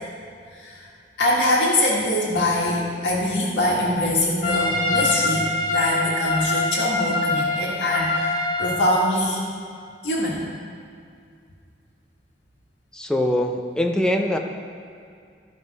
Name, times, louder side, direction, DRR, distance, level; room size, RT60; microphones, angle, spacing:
voice 1, 1.2-9.5 10.0-10.4, left 1 dB, 85° left, -4 dB, 1.7 m, -23 dB
Trumpet, 4.4-8.9, left 2 dB, 55° left, 1.3 m, -24 dB
voice 2, 12.9-14.4, left 1 dB, 5° left, 3 dB, 0.6 m, -22 dB
13.5 x 5.4 x 4.1 m, 2.3 s
head